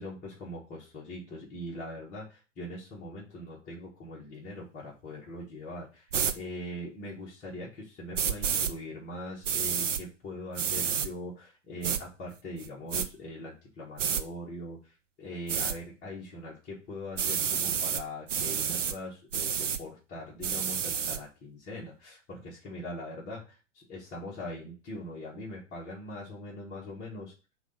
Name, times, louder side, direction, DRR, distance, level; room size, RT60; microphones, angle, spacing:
voice 1, 0.0-27.3, left 1 dB, 20° left, -6 dB, 2.2 m, -42 dB
sound 1, 6.1-6.3 8.1-8.7 9.4-10.0 10.6-11.1 11.8-12.0 12.6-13.1 14.0-14.2 15.5-15.8 17.2-18.0 18.3-18.9 19.3-19.8 20.4-21.2, right 7 dB, 75° right, 0.8 m, -29 dB
5.9 x 3.1 x 5.5 m, 0.31 s
figure-of-eight pair, 110°, 38 cm